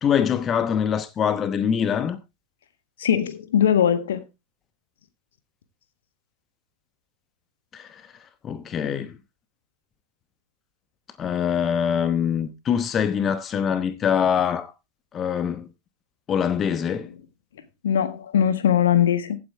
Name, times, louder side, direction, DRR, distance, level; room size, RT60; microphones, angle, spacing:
voice 1, 0.0-2.2 7.7-9.2 11.2-14.7 15.1-15.7 16.3-17.1, left 8 dB, 25° left, 1.0 m, -24 dB
voice 2, 3.0-4.2 17.8-19.4, left 9 dB, 60° left, 1.5 m, -20 dB
15.5 x 8.7 x 3.4 m
figure-of-eight pair, 90°, 0 cm